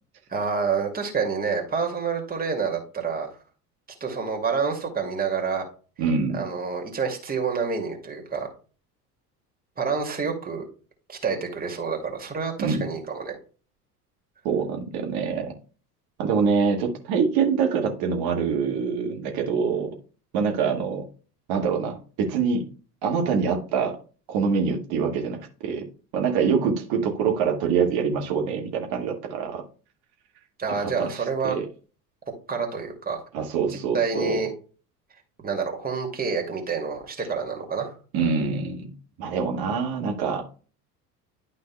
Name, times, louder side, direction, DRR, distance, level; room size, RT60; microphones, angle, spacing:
voice 1, 0.3-3.3 4.0-5.6 6.3-8.5 9.8-10.6 11.1-13.4 30.6-31.6 32.5-33.2 33.9-34.5 35.4-38.0, right 5 dB, 20° right, 1 dB, 2.3 m, -28 dB
voice 2, 6.0-6.4 12.6-12.9 14.4-15.5 16.2-19.9 20.3-21.1 21.5-22.6 23.0-24.0 24.3-25.8 26.1-29.6 30.7-31.7 33.3-34.4 38.1-38.9 39.2-40.6, right 5 dB, 45° right, 2 dB, 2.0 m, -25 dB
11.5 x 5.4 x 2.2 m, 0.37 s
figure-of-eight pair, 70°, 49 cm